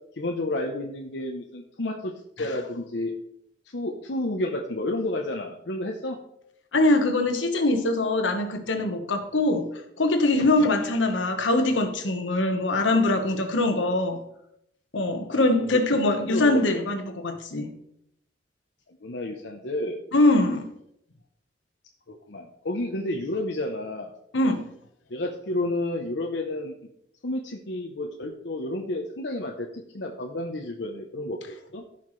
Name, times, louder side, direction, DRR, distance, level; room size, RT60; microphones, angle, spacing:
voice 1, 0.2-3.1 3.7-6.2 10.4-10.9 15.3-15.7 16.2-16.7 19.0-20.0 22.1-24.1 25.1-26.7 27.2-31.4 31.7-31.8, left 1 dB, 65° left, 0.8 m, -31 dB
voice 2, 6.7-9.7 10.0-14.2 14.9-17.7 20.1-20.7 24.3-24.6, left 2 dB, 85° left, 1.2 m, -23 dB
15.0 x 5.8 x 3.2 m
head